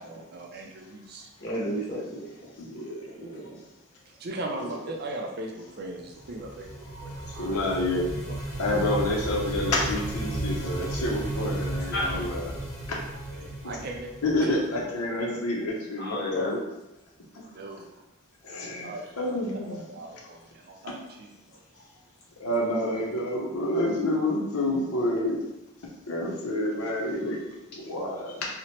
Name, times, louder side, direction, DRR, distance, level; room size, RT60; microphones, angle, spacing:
voice 1, 0.0-1.3 4.1-7.6 8.3-8.4 13.3-14.1 14.4-14.6 17.5-18.0 18.5-21.6 26.7-26.8, right 2 dB, 45° right, 1 dB, 0.4 m, -39 dB
voice 2, 1.4-2.5 3.2-3.6 11.9-12.2 16.0-16.5, left 1 dB, 45° left, -5 dB, 0.7 m, -32 dB
voice 3, 2.6-3.1 6.9-8.0 8.6-12.5 12.9-13.0 13.6-13.8 14.2-16.6 18.4-19.8 20.8-21.0 22.4-25.4 26.1-27.4 27.8-28.5, left 1 dB, 90° left, -2 dB, 0.7 m, -28 dB
sound 1, 6.1-14.8, right 1 dB, 65° left, 1.2 m, -34 dB
2.9 x 2.1 x 2.8 m, 0.95 s
head